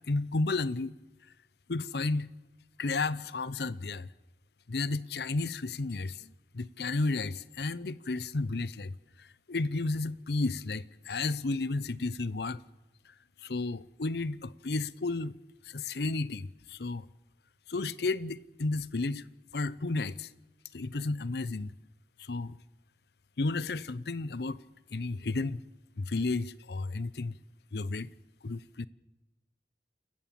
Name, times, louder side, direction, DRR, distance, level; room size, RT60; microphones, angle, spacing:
voice 1, 0.1-0.9 1.7-2.3 2.8-4.1 4.7-12.6 13.4-15.4 15.7-17.1 17.7-19.3 19.5-20.3 20.7-21.7 22.2-22.6 23.4-24.6 24.9-25.6 26.0-27.3 27.7-28.1 28.4-28.9, left 3 dB, 65° left, 0.7 m, -32 dB
28.5 x 14.5 x 7.5 m
head